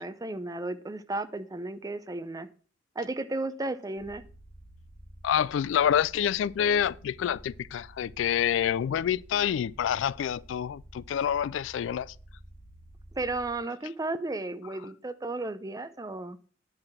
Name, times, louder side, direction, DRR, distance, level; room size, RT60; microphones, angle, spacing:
voice 1, 0.0-2.5 3.0-4.2 13.1-16.4, right 2 dB, 20° right, 0.6 m, -34 dB
sound 1, 4.0-13.5, right 1 dB, 55° left, 2.4 m, -51 dB
voice 2, 5.2-12.1, left 9 dB, 75° left, 0.3 m, -27 dB
9.7 x 4.8 x 5.8 m
head